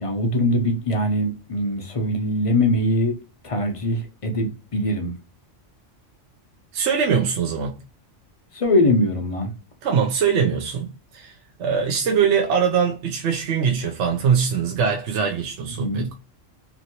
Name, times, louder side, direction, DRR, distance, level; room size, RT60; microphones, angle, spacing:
voice 1, 0.0-3.1 3.4-5.1 8.5-9.5 15.8-16.1, left 1 dB, 45° left, 0.4 m, -22 dB
voice 2, 6.7-7.7 9.8-10.9 11.1-16.1, right 6 dB, 70° right, 0.9 m, -22 dB
3.0 x 2.6 x 2.8 m
omnidirectional pair, 1.3 m